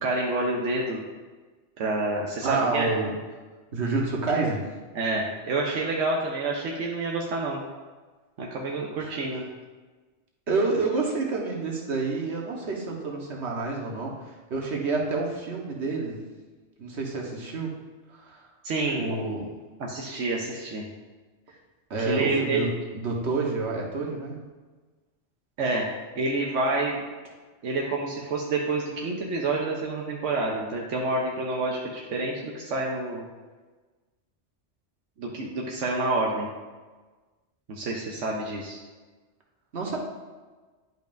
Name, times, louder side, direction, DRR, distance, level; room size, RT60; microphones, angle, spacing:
voice 1, 0.0-1.0 1.8-2.9 4.9-7.6 8.4-9.4 18.6-19.2 19.8-20.9 22.0-22.6 25.6-25.9 26.1-27.0 27.6-33.2 35.2-36.5 37.7-38.8, right 2 dB, 85° right, -1 dB, 1.2 m, -28 dB
voice 2, 2.4-3.1 3.7-4.6 9.0-9.2 10.5-16.2 16.8-17.7 18.1-18.5 18.9-19.4 21.9-24.4 39.7-40.0, right 3 dB, 70° right, -1 dB, 1.5 m, -28 dB
11.0 x 5.3 x 2.6 m, 1.3 s
omnidirectional pair, 1.2 m